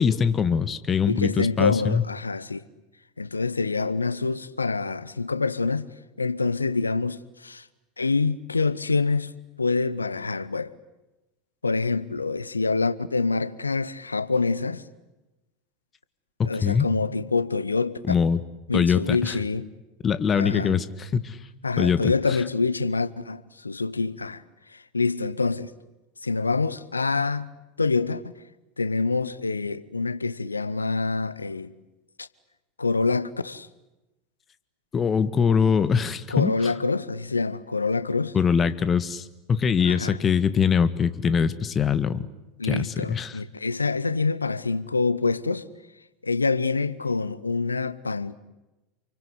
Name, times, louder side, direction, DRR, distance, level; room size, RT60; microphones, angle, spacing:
voice 1, 0.0-2.0 16.6-16.9 18.1-18.4 18.7-19.3 20.0-21.4 21.8-22.1 34.9-36.7 38.3-42.3 42.6-43.4, left 6 dB, 25° left, 1.7 m, -23 dB
voice 2, 1.1-2.6 3.2-5.9 6.2-7.7 8.0-9.3 9.6-10.7 11.6-14.8 16.4-18.0 18.7-19.7 20.3-20.7 21.6-24.4 24.7-25.7 26.2-27.5 27.8-28.2 28.8-31.7 32.2-32.3 32.8-33.7 36.3-38.4 39.8-40.2 42.6-45.7 46.2-48.3, left 4 dB, 85° left, 0.9 m, -26 dB
28.5 x 24.5 x 8.2 m
figure-of-eight pair, 80°, 0 cm